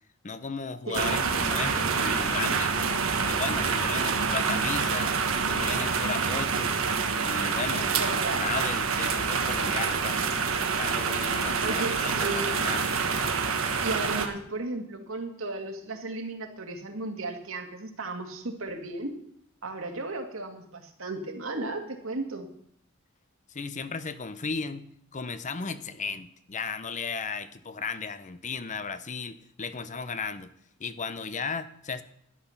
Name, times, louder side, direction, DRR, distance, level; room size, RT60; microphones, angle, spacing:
voice 1, 0.2-2.8 3.3-5.2 5.4-6.7 7.3-10.4 10.8-12.9 23.5-30.5 30.8-32.0, left 5 dB, 35° left, 13 dB, 0.7 m, -35 dB
sound 1, 0.9-14.3, right 5 dB, 90° right, 1.3 m, -27 dB
voice 2, 8.0-8.5 11.6-12.5 13.8-19.2 19.6-22.5, right 2 dB, 75° right, 4 dB, 2.0 m, -35 dB
12.5 x 10.0 x 5.8 m, 0.70 s
head